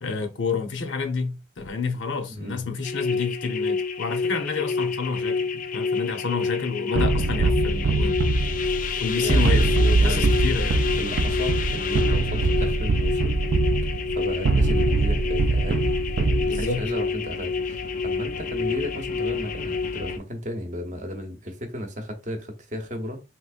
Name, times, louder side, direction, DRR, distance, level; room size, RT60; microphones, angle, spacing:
voice 1, 0.0-8.2 9.0-10.9 16.5-16.8, left 5 dB, 85° left, 0.7 m, -29 dB
voice 2, 2.3-2.7 9.2-10.4 11.0-13.4 13.8-23.2, equal, 40° right, 0.7 m, -34 dB
sound 1, 2.8-20.2, left 4 dB, 45° left, 0.4 m, -28 dB
sound 2, 7.0-16.9, right 3 dB, 55° right, 0.3 m, -23 dB
3.5 x 3.0 x 2.4 m
head